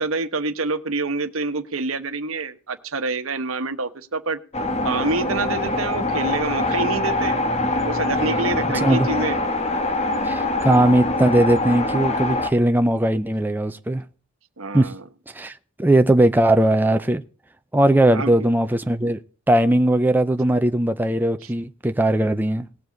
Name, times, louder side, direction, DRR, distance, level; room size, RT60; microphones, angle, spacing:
voice 1, 0.0-4.4 4.8-7.4 7.8-9.4 14.6-15.0 18.1-18.5, right 3 dB, 85° right, 1.1 m, -27 dB
sound 1, 4.5-12.5, left 2 dB, 30° left, 1.1 m, -24 dB
voice 2, 8.7-9.1 10.2-14.0 14.7-14.9 15.3-17.2 17.7-19.2 19.5-22.7, right 1 dB, 10° right, 0.5 m, -19 dB
18.5 x 7.4 x 3.9 m
head